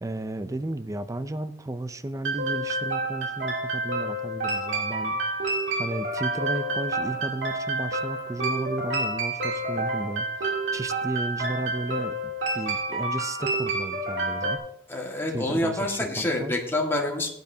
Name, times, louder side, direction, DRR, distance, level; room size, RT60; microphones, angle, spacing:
voice 1, 0.0-5.2 5.8-14.6 15.3-16.5, right 2 dB, 15° right, 12 dB, 0.4 m, -34 dB
sound 1, 2.3-14.6, right 2 dB, 70° right, 3.0 m, -29 dB
voice 2, 14.9-17.3, left 1 dB, 15° left, -1 dB, 1.7 m, -27 dB
16.5 x 9.3 x 2.7 m, 0.75 s
head